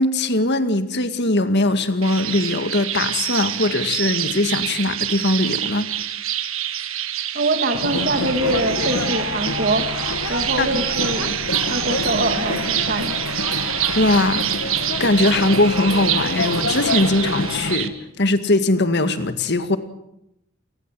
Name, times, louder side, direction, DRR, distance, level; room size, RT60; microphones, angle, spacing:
voice 1, 0.0-5.9 10.6-10.8 14.0-14.5 15.0-19.8, left 2 dB, 50° left, 9 dB, 2.0 m, -20 dB
sound 1, 2.0-17.9, right 11 dB, 70° right, 1.8 m, -26 dB
voice 2, 7.3-9.9 10.3-11.3 11.7-13.1, right 2 dB, 45° right, 7 dB, 2.8 m, -23 dB
sound 2, 7.7-17.8, left 2 dB, 80° left, 2.6 m, -27 dB
29.0 x 19.5 x 7.8 m, 0.80 s
head